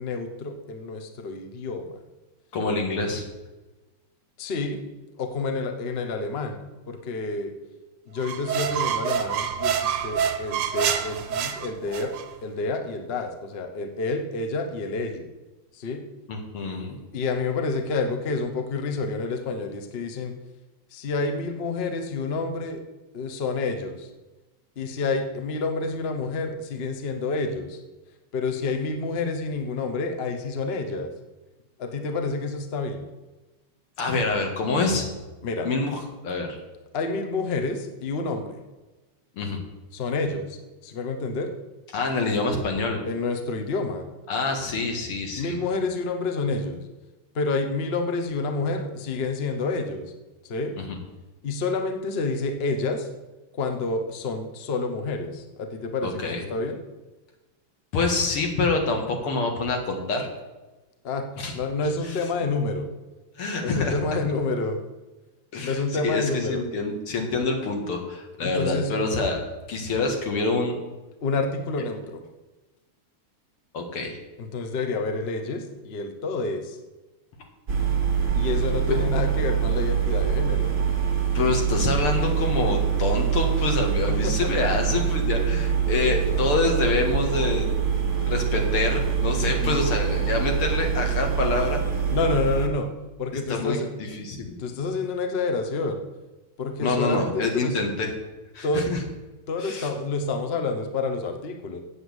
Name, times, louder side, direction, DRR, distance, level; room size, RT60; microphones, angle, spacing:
voice 1, 0.0-2.0 4.4-4.8 5.2-6.6 6.9-7.5 8.1-12.1 12.4-15.3 15.7-16.0 17.1-20.3 20.9-22.8 23.1-24.1 24.8-27.8 28.3-31.1 31.8-33.0 35.4-35.7 36.9-38.6 39.9-41.5 43.0-44.1 45.4-46.9 47.3-50.1 50.4-50.8 51.4-53.1 53.5-56.8 61.0-61.2 61.5-62.9 63.6-64.8 65.6-66.6 68.4-68.9 71.2-72.2 74.4-76.8 78.3-80.7 84.1-85.1 89.6-89.8 92.1-92.9 93.2-94.2 94.6-96.0 96.6-97.8 98.6-98.8 99.5-101.8, left 3 dB, 40° left, 6 dB, 1.0 m, -28 dB
voice 2, 2.5-3.2 16.3-17.0 34.0-35.1 35.6-36.5 39.4-39.6 41.9-43.0 44.3-45.6 50.9-51.0 56.0-56.4 57.9-60.3 61.4-61.5 63.4-64.0 65.5-66.2 66.5-69.4 69.7-70.8 73.7-74.2 81.3-87.7 88.2-91.8 93.5-93.8 94.2-94.5 96.8-98.1 98.5-99.0 99.6-99.9, left 3 dB, 85° left, 3 dB, 2.7 m, -26 dB
sound 1, 8.2-12.3, right 8 dB, 80° right, 1.8 m, -27 dB
sound 2, 77.7-92.7, right 8 dB, 40° right, 1.6 m, -24 dB
8.1 x 8.0 x 8.0 m, 1.1 s
omnidirectional pair, 2.4 m